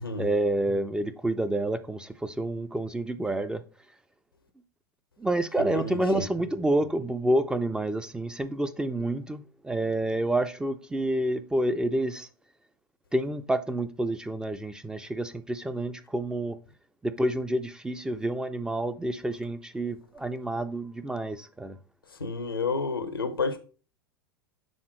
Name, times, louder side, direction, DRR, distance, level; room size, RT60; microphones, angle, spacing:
voice 1, 0.2-3.6 5.2-12.3 13.1-16.6 17.0-21.8, right 1 dB, 5° right, 0.4 m, -28 dB
voice 2, 5.6-6.3 22.2-23.6, left 4 dB, 85° left, 0.7 m, -30 dB
6.4 x 3.5 x 4.4 m
figure-of-eight pair, 85°, 12 cm